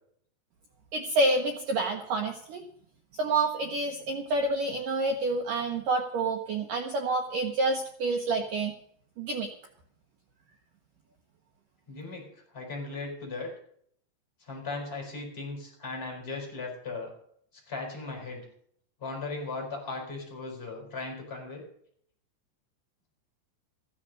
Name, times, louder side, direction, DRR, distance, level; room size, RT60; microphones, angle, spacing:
voice 1, 0.9-2.6 3.2-8.7 9.2-9.5, right 2 dB, 75° right, 4 dB, 1.9 m, -28 dB
voice 2, 11.9-13.5 14.4-17.1 17.7-18.4 19.0-21.6, left 3 dB, 15° left, -1 dB, 4.8 m, -37 dB
15.0 x 10.0 x 6.5 m, 0.66 s
omnidirectional pair, 5.3 m